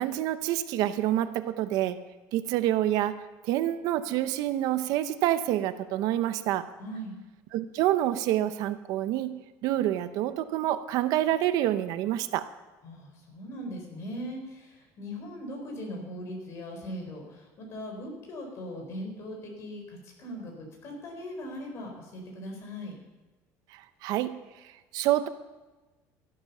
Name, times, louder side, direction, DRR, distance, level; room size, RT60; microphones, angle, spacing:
voice 1, 0.0-2.0 2.3-3.2 3.4-6.7 7.5-12.5 23.7-25.3, right 13 dB, 60° right, 11 dB, 0.7 m, -27 dB
voice 2, 6.8-7.2 12.8-22.9, equal, 40° left, 2 dB, 4.3 m, -39 dB
13.0 x 12.0 x 5.6 m, 1.1 s
cardioid pair, 170°, 7 cm